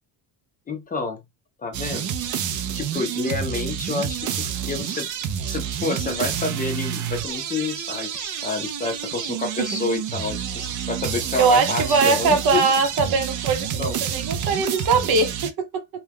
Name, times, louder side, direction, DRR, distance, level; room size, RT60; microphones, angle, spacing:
voice 1, 0.7-1.2 1.6-2.1 2.7-5.1 5.5-12.6 13.8-14.0, left 3 dB, 20° left, 0.4 m, -29 dB
sound 1, 1.7-15.5, right 9 dB, 50° right, 0.4 m, -29 dB
voice 2, 11.4-15.8, right 4 dB, 70° right, 0.8 m, -21 dB
2.3 x 2.2 x 3.3 m
cardioid pair, 130°, 39 cm